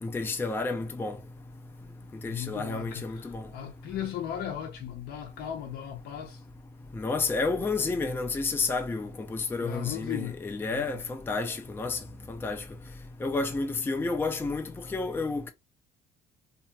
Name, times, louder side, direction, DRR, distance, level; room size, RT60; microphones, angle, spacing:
voice 1, 0.0-1.2 2.2-3.4 6.9-12.0 12.3-12.6 13.2-15.5, left 3 dB, 15° left, 0.4 m, -30 dB
voice 2, 2.3-6.4 9.6-10.4 10.7-11.0, left 10 dB, 70° left, 0.6 m, -37 dB
2.8 x 2.7 x 2.2 m
cardioid pair, 110°, 17 cm